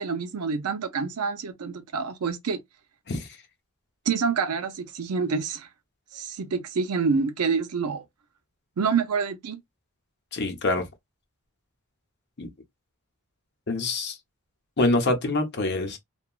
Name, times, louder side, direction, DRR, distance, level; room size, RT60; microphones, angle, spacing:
voice 1, 0.0-2.6 4.1-5.7 6.1-8.0 8.8-9.6, right 5 dB, 85° right, 0.5 m, -27 dB
voice 2, 10.3-10.9 12.4-12.5 13.7-14.2 14.8-16.0, left 2 dB, 50° left, 0.8 m, -25 dB
2.9 x 2.3 x 2.3 m
head